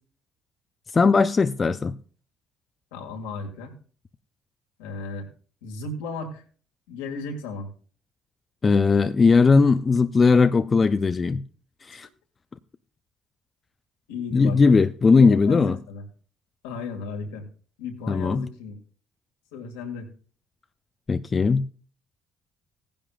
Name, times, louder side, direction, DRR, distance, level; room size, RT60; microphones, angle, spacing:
voice 1, 0.9-2.0 8.6-11.4 11.8-12.1 14.3-15.8 18.1-18.5 21.1-21.6, left 4 dB, 35° left, 0.6 m, -19 dB
voice 2, 2.9-3.8 4.8-5.3 5.6-6.4 6.9-7.7 14.1-14.6 15.3-16.1 16.6-17.5 17.8-18.7 19.5-20.1, left 4 dB, 80° left, 2.3 m, -35 dB
17.0 x 10.5 x 2.5 m
hypercardioid pair, 55°, 0 cm